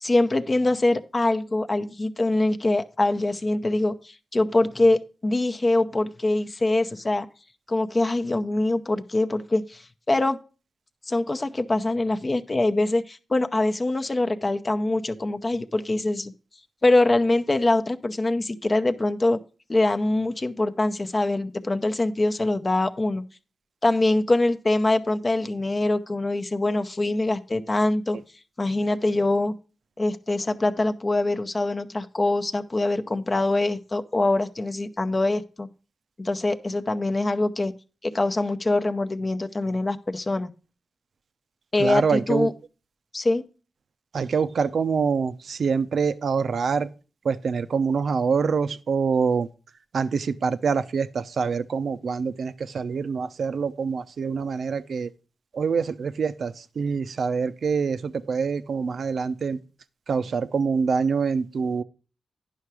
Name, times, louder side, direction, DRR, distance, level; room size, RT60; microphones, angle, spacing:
voice 1, 0.0-7.3 7.7-10.4 11.1-16.3 16.8-19.4 19.7-23.2 23.8-28.2 28.6-29.5 30.0-35.7 36.2-37.7 38.0-40.5 41.7-42.5 43.1-43.4, left 2 dB, 35° left, 0.8 m, -24 dB
voice 2, 41.8-42.5 44.1-46.9 47.2-49.5 49.9-55.1 55.5-59.6 60.1-61.8, right 5 dB, 70° right, 0.6 m, -25 dB
10.5 x 5.7 x 4.8 m
cardioid pair, 70°, 0 cm